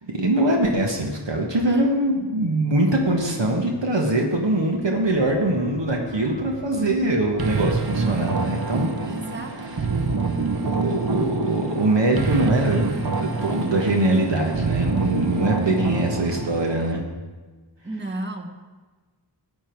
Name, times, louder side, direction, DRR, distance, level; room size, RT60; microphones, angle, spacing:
voice 1, 0.1-9.1 9.5-9.8 10.7-12.9 13.2-17.0, right 1 dB, 70° right, 1 dB, 1.4 m, -22 dB
sound 1, 4.6-13.7 14.0-14.1, left 2 dB, 20° left, 1.0 m, -46 dB
sound 2, 7.4-16.9, right 3 dB, 50° right, 0.9 m, -26 dB
voice 2, 9.1-9.5 17.8-18.5, right 1 dB, 25° right, 3 dB, 1.4 m, -33 dB
14.0 x 8.7 x 4.6 m, 1.3 s
wide cardioid pair, 65°, 45 cm